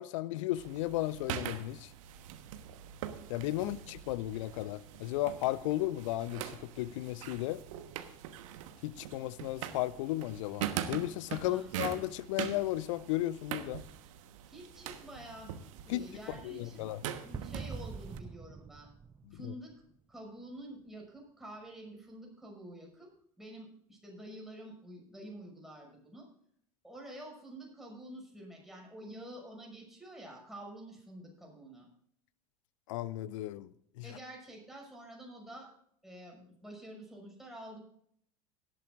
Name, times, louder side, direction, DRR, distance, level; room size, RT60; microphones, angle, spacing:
voice 1, 0.0-1.9 3.3-7.6 8.8-13.8 15.9-16.0 16.4-17.0 19.4-19.5 32.9-33.7, left 15 dB, 55° left, 0.6 m, -34 dB
sound 1, 0.6-18.2, right 10 dB, 60° right, 1.2 m, -43 dB
voice 2, 11.4-11.8 14.5-15.5 15.8-16.8 17.2-18.9 19.3-19.7 20.1-23.1 23.4-26.3 26.8-31.9 34.0-35.7 36.0-37.8, right 1 dB, ahead, 6.1 m, -48 dB
sound 2, 17.3-20.0, right 5 dB, 15° right, 0.7 m, -44 dB
18.0 x 12.5 x 2.5 m
figure-of-eight pair, 75°, 19 cm